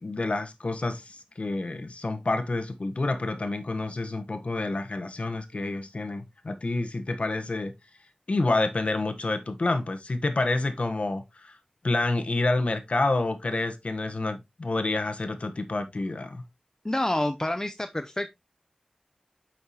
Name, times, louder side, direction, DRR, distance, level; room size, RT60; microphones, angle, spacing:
voice 1, 0.0-7.7 8.3-11.6 11.8-16.4, left 2 dB, 65° left, 1.2 m, -28 dB
voice 2, 16.8-18.3, left 1 dB, 25° left, 0.6 m, -28 dB
8.4 x 5.8 x 3.0 m
wide cardioid pair, 65°, 2 cm